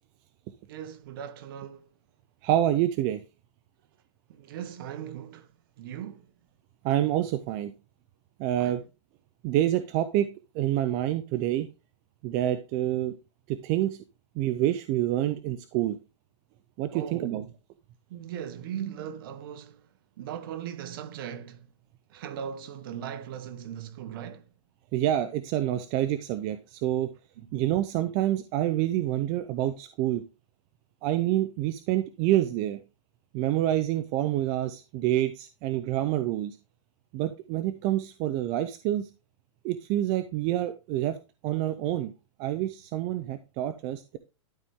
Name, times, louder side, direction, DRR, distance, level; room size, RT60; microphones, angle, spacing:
voice 1, 0.7-1.9 4.3-5.5 5.8-6.3 8.6-8.8 16.9-17.5 18.1-19.8 20.2-21.7 22.1-24.5 27.4-27.5, right 9 dB, 45° right, 1.0 m, -39 dB
voice 2, 2.4-3.2 6.8-7.7 8.4-8.8 9.4-10.3 10.5-11.7 12.2-13.2 13.5-14.0 14.4-16.0 16.8-17.4 24.9-27.1 27.5-30.2 31.0-32.8 33.3-36.6 37.1-39.1 39.6-41.2 41.4-42.1 42.4-44.2, right 13 dB, 25° right, 0.4 m, -27 dB
12.0 x 4.1 x 3.6 m
hypercardioid pair, 165°, 16 cm